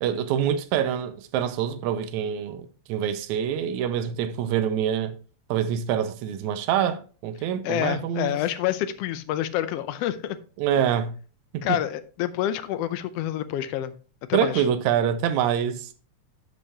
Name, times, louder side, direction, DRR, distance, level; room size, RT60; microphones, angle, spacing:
voice 1, 0.0-5.1 5.5-8.4 10.6-11.1 11.5-11.8 14.3-15.9, right 9 dB, 90° right, 2.0 m, -25 dB
voice 2, 7.6-10.4 11.6-13.9 14.3-14.6, left 12 dB, 75° left, 1.5 m, -27 dB
11.5 x 5.5 x 2.8 m
omnidirectional pair, 3.4 m